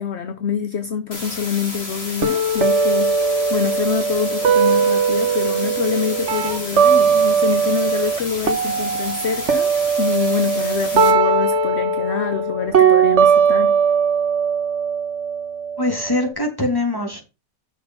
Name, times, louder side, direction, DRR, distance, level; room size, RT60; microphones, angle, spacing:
voice 1, 0.0-3.2 3.5-9.7 10.0-13.8, left 7 dB, 50° left, 0.9 m, -25 dB
sound 1, 1.1-11.1, left 2 dB, 35° left, 3.1 m, -32 dB
sound 2, 2.2-8.2 8.4-16.2, right 5 dB, 45° right, 1.3 m, -19 dB
voice 2, 15.8-17.2, left 2 dB, 10° left, 3.2 m, -22 dB
7.4 x 6.5 x 5.6 m
omnidirectional pair, 1.9 m